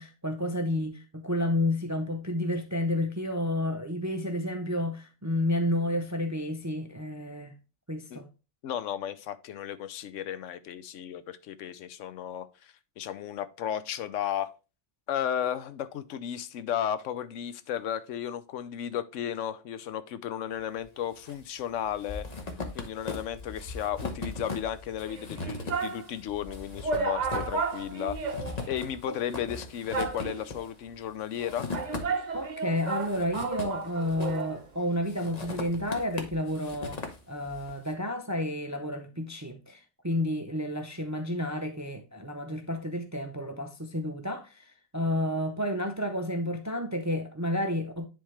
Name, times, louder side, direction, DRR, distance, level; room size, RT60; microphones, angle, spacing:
voice 1, 0.0-7.6 7.9-8.3 29.1-29.2 32.3-48.1, left 1 dB, 25° right, 0.4 m, -31 dB
voice 2, 8.6-14.5 15.1-22.3 22.7-28.2 28.7-31.7, left 10 dB, 85° left, 1.0 m, -34 dB
sound 1, 20.8-21.4 21.7-32.4 32.8-34.6 35.1-37.7, left 3 dB, 35° left, 1.0 m, -39 dB
sound 2, 25.1-26.0 26.5-26.6 26.8-28.9 29.2-29.3 29.9-30.6 31.4-34.6 34.8-34.9, right 4 dB, 40° right, 0.9 m, -33 dB
10.0 x 3.6 x 3.2 m
omnidirectional pair, 1.2 m